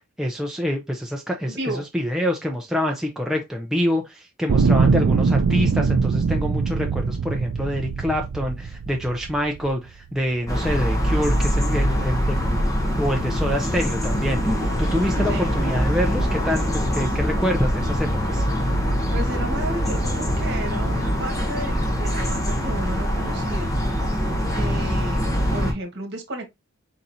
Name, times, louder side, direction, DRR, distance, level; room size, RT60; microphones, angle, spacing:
voice 1, 0.2-1.6 1.9-12.6 13.0-18.5, equal, ahead, 0.4 m, -26 dB
voice 2, 1.5-1.8 15.3-15.5 19.1-23.7 24.5-26.6, right 1 dB, 50° right, 1.4 m, -33 dB
sound 1, 4.5-9.7 10.5-10.6, right 5 dB, 65° right, 0.4 m, -22 dB
sound 2, 10.5-25.7, equal, 15° left, 1.0 m, -23 dB
4.2 x 3.9 x 2.6 m
head